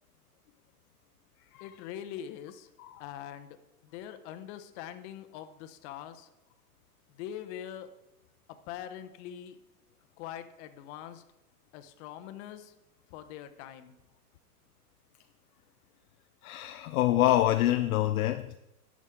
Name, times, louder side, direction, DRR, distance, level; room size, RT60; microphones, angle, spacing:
voice 1, 1.6-2.7 3.0-3.6 3.8-6.3 7.1-7.9 8.5-9.6 10.2-11.2 11.7-12.7 13.1-13.9, left 10 dB, 45° left, 0.9 m, -43 dB
voice 2, 16.4-18.6, left 14 dB, 65° left, 0.5 m, -26 dB
11.0 x 6.2 x 3.6 m
hypercardioid pair, 110°, 48 cm